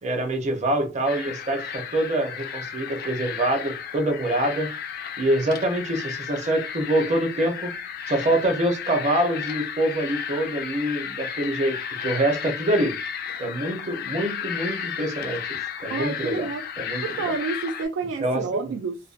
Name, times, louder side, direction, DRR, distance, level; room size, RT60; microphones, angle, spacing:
voice 1, 0.0-4.7 5.2-7.7 8.1-13.0 13.4-15.4 15.8-16.5 16.8-17.0 18.2-18.6, right 1 dB, 40° right, 0.6 m, -25 dB
sound 1, 1.1-17.9, left 8 dB, 50° left, 0.3 m, -33 dB
voice 2, 15.9-16.7 17.0-19.0, right 4 dB, 90° right, 0.3 m, -29 dB
2.5 x 2.1 x 2.4 m
head